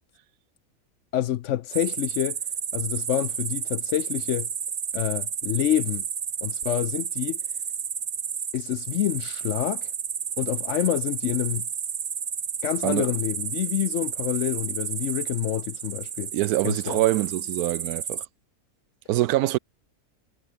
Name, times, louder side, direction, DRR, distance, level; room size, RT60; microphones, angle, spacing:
voice 1, 1.1-2.4 2.7-4.5 4.9-6.0 6.4-7.4 8.5-9.9 10.4-11.7 12.6-16.3 16.6-17.0, left 12 dB, 65° left, 0.8 m, -27 dB
sound 1, 1.7-18.3, right 7 dB, 45° right, 1.0 m, -32 dB
voice 2, 16.3-18.2 19.1-19.6, right 16 dB, 85° right, 1.1 m, -24 dB
omnidirectional pair, 1.5 m